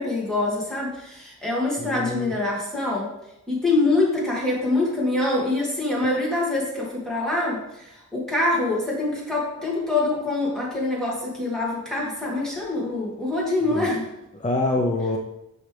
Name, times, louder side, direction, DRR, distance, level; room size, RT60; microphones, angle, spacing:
voice 1, 0.0-3.1 3.5-14.1, left 2 dB, ahead, -5 dB, 2.2 m, -25 dB
voice 2, 1.8-2.3 13.6-13.9 14.3-15.2, left 2 dB, 25° left, 1 dB, 0.7 m, -25 dB
5.9 x 5.5 x 3.4 m, 0.88 s
wide cardioid pair, 80°, 31 cm